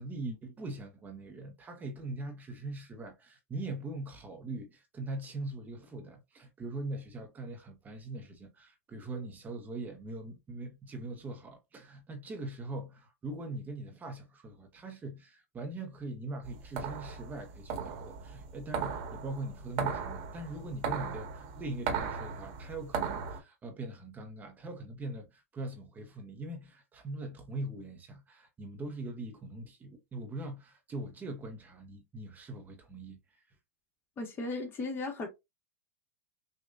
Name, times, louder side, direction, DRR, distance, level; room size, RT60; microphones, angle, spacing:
voice 1, 0.0-33.4, right 2 dB, 20° right, 1.1 m, -41 dB
sound 1, 16.4-23.4, right 6 dB, 50° right, 1.4 m, -37 dB
voice 2, 34.2-35.3, left 3 dB, 30° left, 1.9 m, -36 dB
6.1 x 2.6 x 2.5 m
hypercardioid pair, 120°, 8 cm